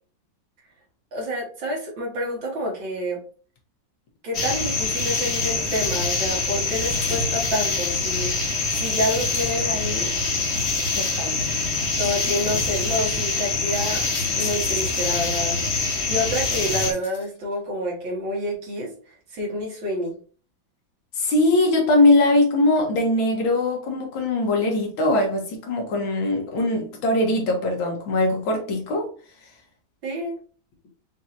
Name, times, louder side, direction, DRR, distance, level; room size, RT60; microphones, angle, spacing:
voice 1, 1.1-3.2 4.2-8.3 8.8-10.1 12.0-14.1 14.3-15.6 16.1-20.2 30.0-30.3, equal, 70° right, 2.3 m, -28 dB
sound 1, 4.3-16.9, left 3 dB, 45° left, 1.0 m, -25 dB
sound 2, 7.0-7.5 9.3-10.1 12.0-12.5 14.1-15.2 16.5-17.5, left 5 dB, 70° left, 1.5 m, -40 dB
voice 2, 10.9-11.4 21.2-29.1, left 2 dB, 85° left, 2.0 m, -21 dB
5.7 x 2.8 x 2.5 m
omnidirectional pair, 2.1 m